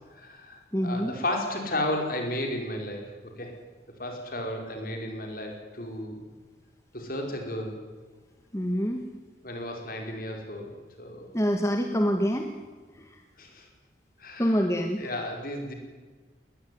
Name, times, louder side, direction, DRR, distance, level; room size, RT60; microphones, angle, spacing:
voice 1, 0.1-3.6 4.0-6.2 6.9-7.8 9.4-11.3 13.4-13.7 14.2-14.7 15.0-15.7, left 1 dB, 45° left, 3 dB, 5.3 m, -33 dB
voice 2, 0.7-1.1 8.5-9.1 11.3-12.5 12.9-13.2 14.4-15.1, equal, 15° left, 4 dB, 1.5 m, -26 dB
20.5 x 20.0 x 9.7 m, 1.4 s
head